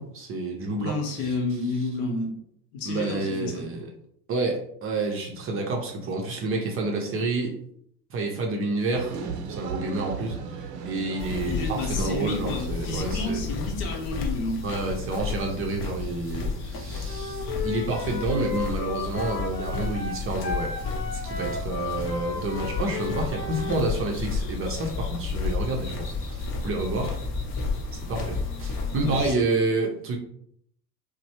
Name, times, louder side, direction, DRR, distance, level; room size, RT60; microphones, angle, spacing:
voice 1, 0.0-1.4 2.9-3.9 4.3-7.5 8.1-9.2 9.5-13.5 14.6-20.7 21.1-27.2 27.9-30.2, right 2 dB, 30° right, 1 dB, 0.6 m, -29 dB
voice 2, 0.8-2.3 2.7-3.7 11.4-14.6 28.7-29.6, left 2 dB, 60° left, 2 dB, 0.9 m, -31 dB
sound 1, 8.9-13.7, right 5 dB, 75° right, 0.6 m, -37 dB
sound 2, 11.2-29.3, left 4 dB, 40° left, 0.8 m, -32 dB
Wind instrument woodwind instrument, 17.1-23.9, left 4 dB, 85° left, 0.8 m, -34 dB
3.0 x 2.1 x 2.9 m, 0.68 s
hypercardioid pair, 80°, 49 cm